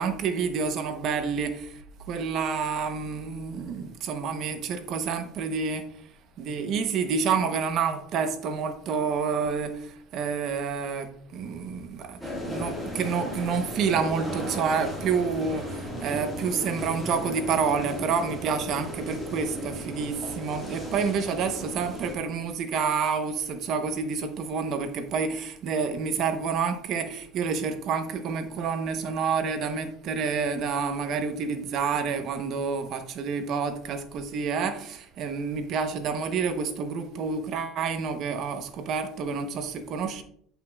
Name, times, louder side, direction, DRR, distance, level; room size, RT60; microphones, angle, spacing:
voice 1, 0.0-1.8 2.1-5.9 6.4-40.2, right 5 dB, 45° right, 0.9 m, -28 dB
sound 1, 12.2-22.2, equal, 5° left, 1.7 m, -36 dB
9.2 x 5.5 x 2.4 m
cardioid pair, 145°, 0 cm